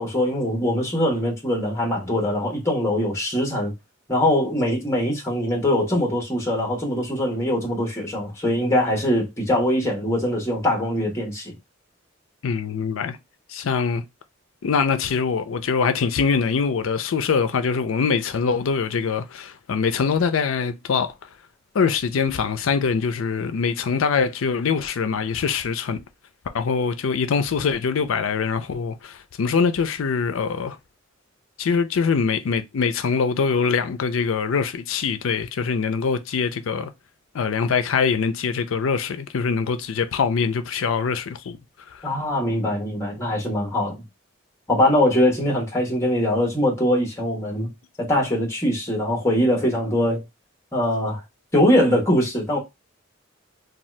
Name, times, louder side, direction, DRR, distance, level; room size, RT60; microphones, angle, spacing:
voice 1, 0.0-3.7 4.1-11.6 42.0-44.0 44.7-47.7 48.1-50.2 50.7-51.2 51.5-52.6, left 1 dB, 15° left, 1.1 m, -22 dB
voice 2, 12.4-13.2 13.5-14.0 14.6-21.1 21.7-26.0 26.5-30.8 31.6-36.9 37.3-41.6, left 5 dB, 75° left, 0.4 m, -23 dB
2.7 x 2.3 x 3.1 m
head